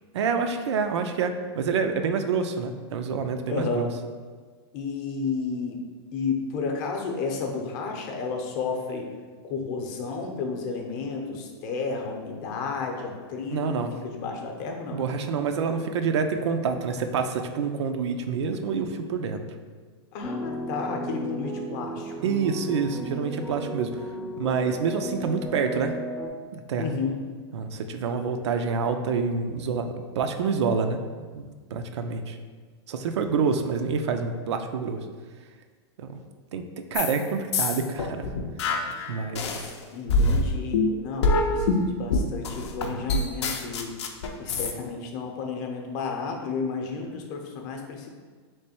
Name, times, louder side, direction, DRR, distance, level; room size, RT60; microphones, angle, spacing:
voice 1, 0.1-3.9 13.5-13.9 14.9-19.4 22.2-24.0 24.4-26.0 26.5-26.9 27.5-32.4 32.9-35.0 36.0-36.2 36.5-38.2 39.1-39.5, right 5 dB, 80° right, 7 dB, 0.4 m, -27 dB
voice 2, 3.5-3.9 4.7-5.8 6.1-9.1 9.4-13.6 14.0-15.1 20.1-22.1 26.8-27.2 39.9-44.0 44.4-48.1, left 4 dB, 45° left, 2 dB, 0.7 m, -32 dB
sound 1, 20.2-26.3, equal, 5° right, 0.4 m, -34 dB
sound 2, 36.9-37.2 37.5-39.7 40.1-44.7, left 3 dB, 80° left, 0.5 m, -25 dB
3.3 x 3.0 x 4.3 m, 1.5 s
supercardioid pair, 145°, 14 cm